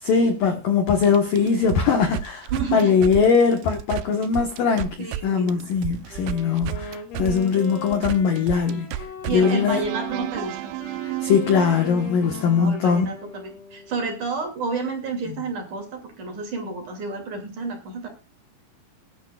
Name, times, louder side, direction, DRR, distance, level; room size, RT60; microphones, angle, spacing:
voice 1, 0.0-9.1 9.3-9.8 11.0-13.1 15.3-15.4, left 6 dB, 70° left, 2.2 m, -21 dB
sound 1, 0.9-5.2 5.5-12.7, right 14 dB, 90° right, 2.4 m, -32 dB
voice 2, 2.5-2.9 5.0-5.7 9.2-10.7 12.3-18.1, right 4 dB, 45° right, 3.4 m, -30 dB
Wind instrument woodwind instrument, 6.1-14.1, left 5 dB, 85° left, 5.5 m, -39 dB
21.0 x 11.0 x 2.4 m
omnidirectional pair, 5.9 m